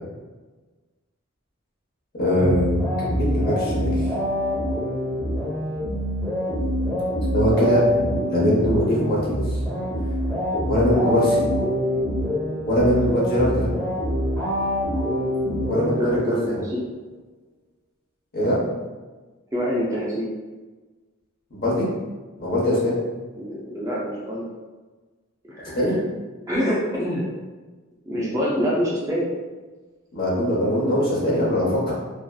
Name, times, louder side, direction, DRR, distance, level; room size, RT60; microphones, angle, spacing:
voice 1, 2.2-4.0 7.3-7.8 8.3-9.6 10.7-11.4 12.7-13.7 15.7-16.2 16.5-16.6 18.3-18.6 21.5-21.9 22.4-23.0 25.7-26.0 30.1-31.9, equal, 45° left, -5 dB, 0.8 m, -21 dB
sound 1, 2.4-16.7, equal, 10° left, 0.9 m, -25 dB
voice 2, 16.0-16.8 19.5-20.3 23.4-24.4 25.5-26.0 26.5-27.3 28.1-29.3, equal, 15° right, -6 dB, 0.4 m, -25 dB
2.6 x 2.3 x 2.3 m, 1.3 s
head